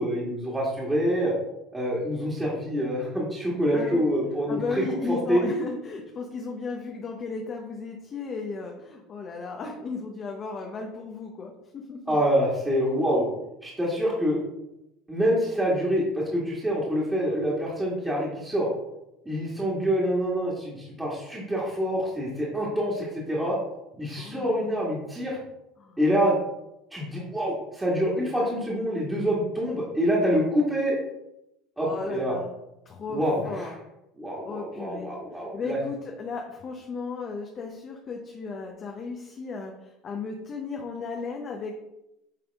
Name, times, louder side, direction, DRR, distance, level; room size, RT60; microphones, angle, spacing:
voice 1, 0.0-1.3 1.7-5.4 12.1-13.3 13.6-14.4 15.1-18.7 19.3-23.6 24.0-25.4 26.0-26.3 26.9-31.0 31.8-32.3 33.1-33.7 34.2-35.8, equal, 10° right, -6 dB, 1.7 m, -26 dB
voice 2, 3.7-4.0 4.5-12.2 24.2-24.6 25.8-26.0 31.8-32.5 32.9-33.7 34.4-41.7, left 4 dB, 35° left, 2 dB, 0.8 m, -35 dB
9.1 x 3.4 x 3.5 m, 0.89 s
supercardioid pair, 125°, 0 cm